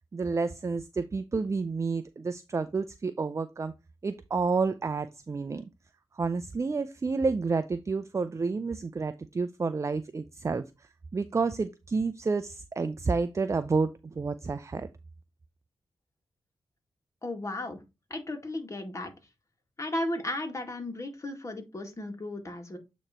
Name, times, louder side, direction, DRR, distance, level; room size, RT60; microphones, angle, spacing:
voice 1, 0.1-3.7 4.0-5.7 6.1-14.9, right 4 dB, 35° right, 0.5 m, -30 dB
voice 2, 17.2-17.8 18.1-19.1 19.8-22.8, left 1 dB, 35° left, 2.0 m, -35 dB
8.5 x 3.1 x 4.3 m
cardioid pair, 65°, 9 cm